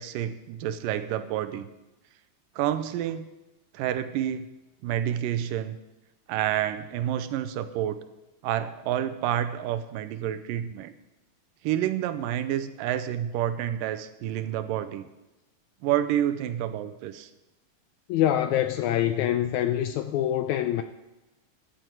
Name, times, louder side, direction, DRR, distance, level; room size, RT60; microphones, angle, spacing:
voice 1, 0.0-1.7 2.6-3.3 3.7-4.4 4.8-5.8 6.3-8.0 8.4-10.9 11.6-15.1 15.8-17.3, right 11 dB, 90° right, 2.4 m, -29 dB
voice 2, 18.1-20.8, left 11 dB, 80° left, 1.7 m, -25 dB
13.5 x 10.5 x 4.6 m
omnidirectional pair, 3.8 m